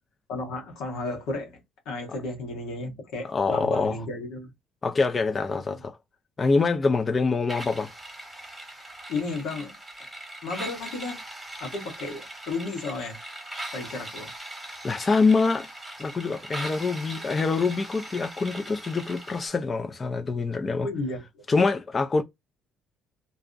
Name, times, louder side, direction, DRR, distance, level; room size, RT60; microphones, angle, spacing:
voice 1, 0.3-1.6 1.9-4.5 5.7-5.8 9.1-9.7 10.4-11.2 11.6-13.2 13.7-14.3 20.8-21.2, left 3 dB, 80° left, 1.0 m, -33 dB
voice 2, 3.3-4.0 4.8-6.0 6.4-7.9 14.8-15.7 16.0-20.9 21.5-22.2, left 4 dB, 30° left, 0.4 m, -25 dB
sound 1, 7.5-19.5, right 1 dB, 10° right, 1.1 m, -40 dB
2.4 x 2.0 x 2.5 m
supercardioid pair, 85°, 0 cm